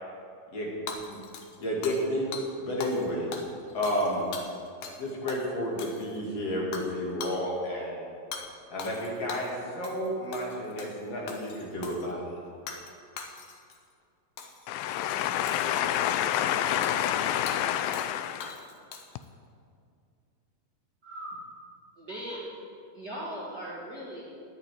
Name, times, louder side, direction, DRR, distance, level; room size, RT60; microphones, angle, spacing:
Hammer / Shatter, 0.9-2.1 2.3-2.5 2.8-3.1 3.3-5.0 5.3-5.4 5.8-6.3 6.7-6.9 7.2-7.4 8.3-8.5 8.8-9.5 9.8-10.1 10.3-11.0 11.3-12.1 12.7-12.9 13.2-13.8 14.4-14.7 15.5-16.0 16.8-17.0 17.5-17.6 17.9-18.1 18.4-19.3, left 5 dB, 65° left, 2.2 m, -40 dB
voice 1, 1.6-2.3 2.6-3.3 3.7-4.3 5.0-8.1 8.7-12.2, equal, 45° left, -4 dB, 3.4 m, -31 dB
voice 2, 14.7-18.6, left 11 dB, 85° left, 11 dB, 2.3 m, -28 dB
voice 3, 21.0-21.4 22.0-22.6 22.9-24.2, right 1 dB, 40° right, -6 dB, 1.7 m, -38 dB
10.0 x 8.8 x 9.3 m, 2.4 s
omnidirectional pair, 4.1 m